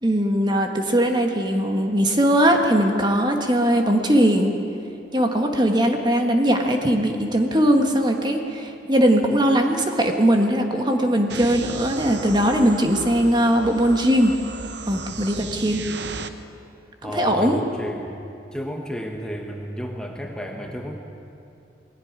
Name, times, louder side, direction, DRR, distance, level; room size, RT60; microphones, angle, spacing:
voice 1, 0.0-4.5 5.1-14.3 14.9-15.8 17.0-17.6, equal, 25° right, 3 dB, 1.6 m, -20 dB
sound 1, 11.3-16.3, right 4 dB, 75° right, 0.9 m, -35 dB
voice 2, 17.0-18.1 18.5-21.0, equal, 5° left, 1 dB, 1.3 m, -32 dB
20.0 x 16.5 x 9.6 m, 2.6 s
head